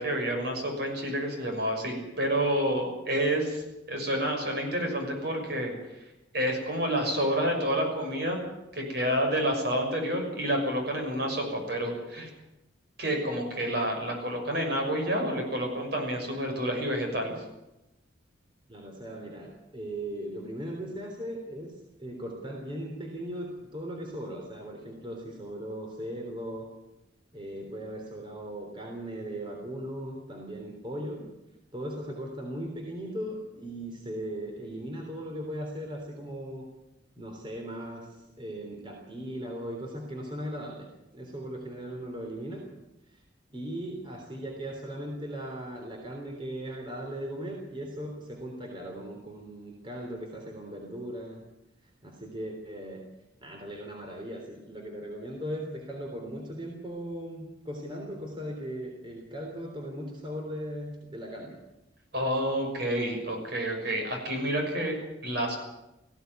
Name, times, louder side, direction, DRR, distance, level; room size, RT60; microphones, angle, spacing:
voice 1, 0.0-6.0 6.3-8.4 8.7-12.3 13.0-17.3 62.1-65.0 65.2-65.6, equal, 60° right, 3 dB, 6.4 m, -29 dB
voice 2, 18.7-21.7 22.0-26.7 27.3-31.3 31.7-36.7 37.2-38.1 38.4-40.9 41.1-42.6 43.1-43.2 43.5-51.4 52.0-53.0 53.4-61.6, equal, 25° right, 1 dB, 3.5 m, -38 dB
19.0 x 16.0 x 9.4 m, 0.93 s
head